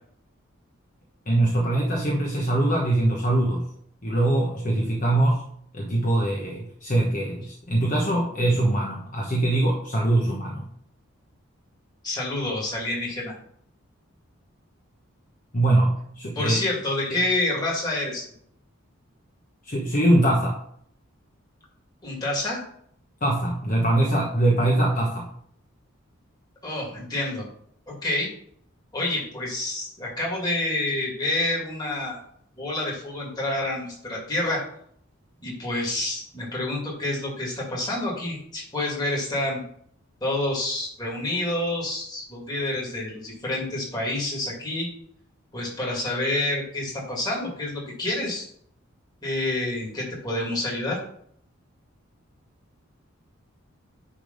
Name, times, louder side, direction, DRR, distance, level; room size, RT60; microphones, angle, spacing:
voice 1, 1.3-3.7 4.0-5.4 5.7-10.7 15.5-16.6 17.1-17.2 19.6-20.6 23.2-25.3, right 1 dB, 40° left, -2 dB, 1.1 m, -22 dB
voice 2, 12.0-13.3 16.4-18.2 22.0-22.6 26.6-27.5 27.9-28.3 28.9-32.2 32.6-34.6 35.4-39.6 40.2-44.9 45.5-48.5 49.2-51.0, left 1 dB, 20° left, -3 dB, 2.3 m, -28 dB
9.9 x 3.4 x 5.3 m, 0.66 s
head